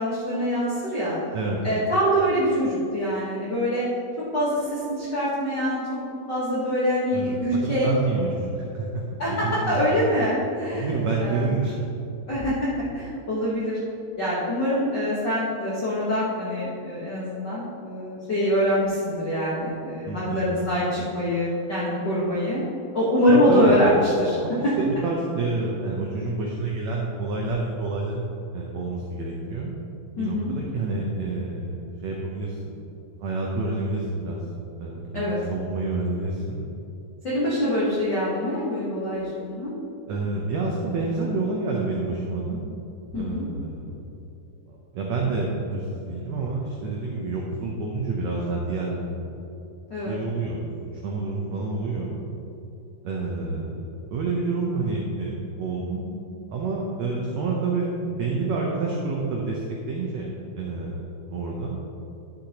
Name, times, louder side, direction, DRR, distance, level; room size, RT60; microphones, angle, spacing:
voice 1, 0.0-1.2 1.6-3.8 4.2-5.9 6.3-7.9 9.2-10.9 11.2-11.5 12.3-13.8 14.2-22.6 22.9-24.4 30.2-30.5 35.1-35.4 37.2-39.7 43.1-43.4 49.9-50.1, equal, 65° left, -9 dB, 1.0 m, -24 dB
voice 2, 7.1-10.0 10.7-11.8 20.1-20.5 23.3-23.7 24.5-29.7 30.2-31.8 32.0-32.6 33.2-34.4 34.8-36.6 40.1-42.6 43.1-44.2 44.7-49.3 50.1-50.6 51.0-52.2 53.0-53.7 54.1-56.1 56.5-60.3 60.5-61.0 61.3-61.8, right 3 dB, 85° right, -2 dB, 1.5 m, -28 dB
11.5 x 6.5 x 2.9 m, 2.7 s
omnidirectional pair, 4.1 m